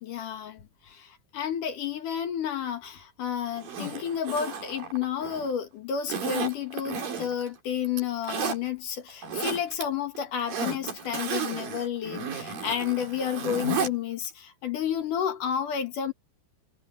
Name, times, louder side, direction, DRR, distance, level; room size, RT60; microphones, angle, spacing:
voice 1, 0.0-16.1, left 9 dB, 60° left, 2.4 m, -31 dB
Zipper (clothing), 3.6-5.5 6.1-7.5 7.9-8.6 9.1-9.8 10.2-13.9 14.3-14.4, right 5 dB, 50° right, 5.4 m, -33 dB
omnidirectional pair, 5.4 m